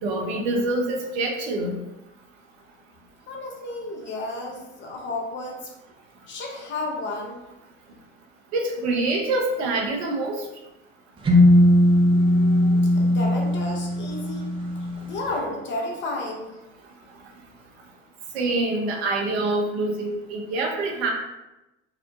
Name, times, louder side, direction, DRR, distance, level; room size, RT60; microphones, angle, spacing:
voice 1, 0.0-1.8 8.5-10.4 18.3-21.1, right 2 dB, 65° right, 0 dB, 0.6 m, -25 dB
voice 2, 3.3-5.7 6.3-7.4 12.1-14.5 14.8-16.6, left 2 dB, 35° left, 0 dB, 0.6 m, -33 dB
sound 1, 11.3-15.1, left 1 dB, 15° right, 0.4 m, -19 dB
2.8 x 2.1 x 2.5 m, 0.95 s
figure-of-eight pair, 65°, 35 cm